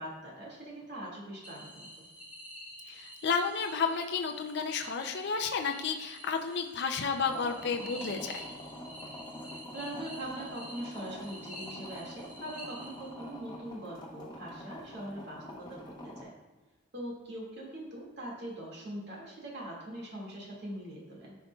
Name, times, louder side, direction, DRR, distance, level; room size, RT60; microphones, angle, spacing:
voice 1, 0.0-2.0 9.7-16.3 16.9-21.4, right 1 dB, 55° right, -4 dB, 2.1 m, -42 dB
sound 1, 1.4-13.4, equal, 5° right, 1.6 m, -48 dB
voice 2, 2.9-8.5, left 5 dB, 55° left, 4 dB, 0.5 m, -32 dB
sound 2, 7.2-16.2, left 1 dB, 20° left, 1.0 m, -46 dB
10.5 x 5.2 x 2.4 m, 1.2 s
head